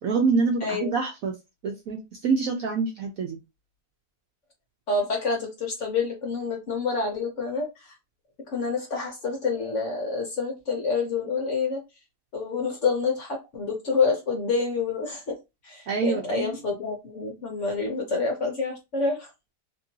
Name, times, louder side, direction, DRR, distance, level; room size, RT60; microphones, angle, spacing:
voice 1, 0.0-1.4 1.6-3.4 15.9-16.6, right 4 dB, 70° right, 2 dB, 0.8 m, -26 dB
voice 2, 0.6-0.9 4.9-7.9 8.5-11.8 12.3-15.4 15.6-19.3, left 4 dB, 55° left, 1 dB, 1.0 m, -28 dB
2.9 x 2.7 x 2.7 m, 0.24 s
omnidirectional pair, 1.9 m